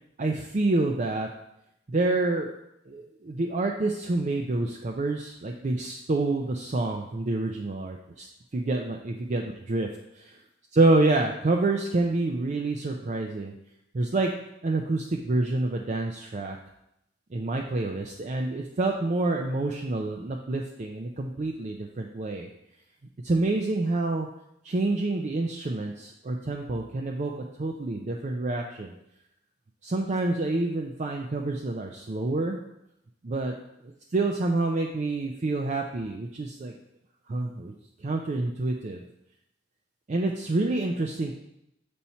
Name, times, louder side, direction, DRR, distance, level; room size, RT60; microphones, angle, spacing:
voice 1, 0.2-1.3 1.9-2.5 2.9-8.3 8.5-9.4 9.7-9.9 10.8-13.5 13.9-14.3 14.6-16.6 17.3-22.5 23.2-24.3 24.7-27.3 27.6-28.9 29.8-32.6 33.2-33.5 34.1-36.7 37.3-37.7 38.0-39.0 40.1-41.4, right 2 dB, 40° right, 1 dB, 0.5 m, -27 dB
7.1 x 4.2 x 4.3 m, 0.82 s
head